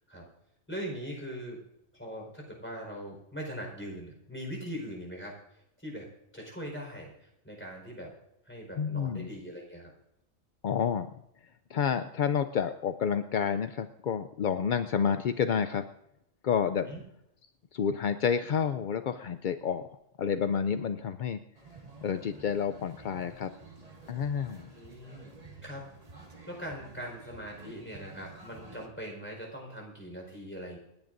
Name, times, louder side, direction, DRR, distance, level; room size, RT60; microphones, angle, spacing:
voice 1, 0.7-1.6 1.9-5.3 5.8-6.1 6.3-8.1 8.4-9.9 16.8-17.0 24.7-25.4 25.6-25.9 26.2-30.8, equal, 10° left, 0 dB, 4.6 m, -41 dB
voice 2, 8.8-9.3 10.6-11.1 11.7-15.9 16.4-16.9 17.7-19.9 20.2-21.4 22.0-23.5 24.1-24.7, left 7 dB, 60° left, 9 dB, 0.5 m, -29 dB
sound 1, 21.5-28.9, right 3 dB, 30° right, 1.9 m, -51 dB
29.0 x 10.5 x 2.6 m, 0.83 s
omnidirectional pair, 1.4 m